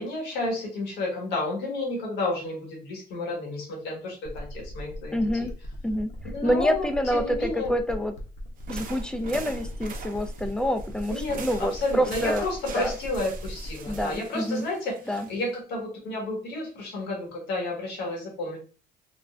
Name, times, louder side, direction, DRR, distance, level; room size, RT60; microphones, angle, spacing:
voice 1, 0.0-5.2 6.3-7.7 11.1-18.6, left 2 dB, 90° left, -1 dB, 1.3 m, -31 dB
sound 1, 4.2-14.2, equal, 45° left, 0.7 m, -39 dB
voice 2, 5.1-5.5 5.8-6.1 6.4-8.1 8.7-12.4 12.7-12.9 13.9-14.7 15.1-15.3, equal, 5° left, 8 dB, 0.3 m, -27 dB
sound 2, 8.6-15.6, right 5 dB, 55° right, 0.5 m, -43 dB
3.7 x 2.1 x 2.3 m, 0.37 s
cardioid pair, 110°, 17 cm